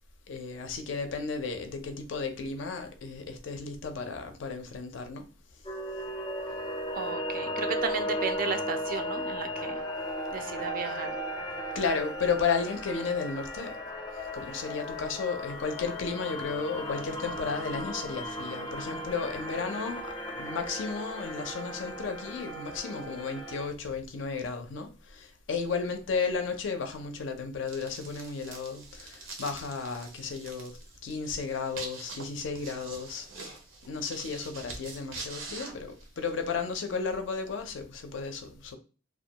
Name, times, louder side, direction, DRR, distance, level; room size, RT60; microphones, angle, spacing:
voice 1, 0.3-5.3 11.7-13.7 14.3-33.5 33.9-38.8, left 5 dB, 70° left, 0.4 m, -33 dB
sound 1, 5.6-23.7, equal, 20° left, 0.5 m, -36 dB
voice 2, 6.9-9.8 10.3-11.2, right 5 dB, 45° right, 0.3 m, -34 dB
sound 2, 27.7-36.5, right 3 dB, 90° right, 0.6 m, -45 dB
2.3 x 2.2 x 2.7 m
head